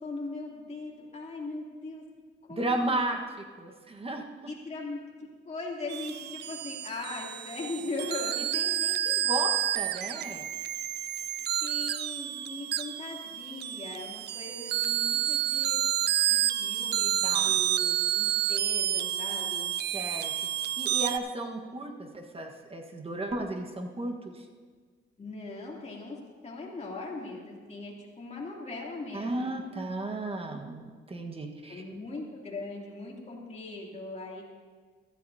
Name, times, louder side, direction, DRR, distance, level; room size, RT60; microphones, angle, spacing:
voice 1, 0.0-2.0 2.5-3.0 4.5-5.0 5.5-8.3 11.6-15.8 16.3-19.7 25.2-26.2 26.4-29.6 31.7-34.5, left 3 dB, 35° left, -3 dB, 3.0 m, -39 dB
voice 2, 2.5-3.2 3.6-4.2 8.5-10.5 17.2-17.6 19.9-20.3 20.8-24.4 29.1-31.8, right 2 dB, 30° right, 3 dB, 1.4 m, -34 dB
sound 1, 5.9-21.2, right 11 dB, 55° right, 0.4 m, -29 dB
15.0 x 13.0 x 2.8 m, 1.5 s
cardioid pair, 90°, 20 cm